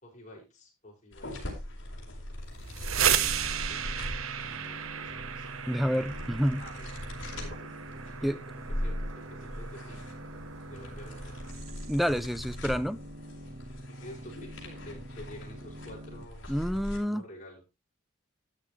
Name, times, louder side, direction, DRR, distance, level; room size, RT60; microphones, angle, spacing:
voice 1, 0.0-1.6 2.8-3.4 3.7-5.5 6.6-6.9 7.3-7.7 8.0-10.1 10.7-11.3 14.0-16.5 17.0-17.6, left 1 dB, 35° left, 6.2 m, -50 dB
sound 1, 1.1-17.0, left 1 dB, 60° left, 4.5 m, -41 dB
sound 2, 2.5-12.3, right 9 dB, 80° right, 1.0 m, -35 dB
sound 3, 2.9-16.3, right 1 dB, 45° right, 1.5 m, -46 dB
voice 2, 5.7-6.6 8.2-8.4 11.9-13.0 16.5-17.2, equal, ahead, 0.5 m, -28 dB
13.0 x 9.8 x 3.2 m
head